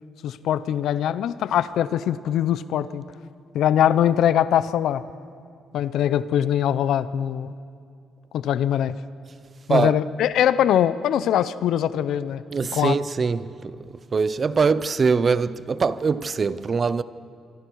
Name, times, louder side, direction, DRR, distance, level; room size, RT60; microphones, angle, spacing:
voice 1, 0.2-3.0 3.5-5.0 5.7-7.5 8.3-9.0 9.7-12.4 12.7-13.0, left 10 dB, 80° left, 0.7 m, -22 dB
voice 2, 12.5-17.0, right 5 dB, 40° right, 0.6 m, -23 dB
26.0 x 24.0 x 4.7 m
cardioid pair, 90°, 0 cm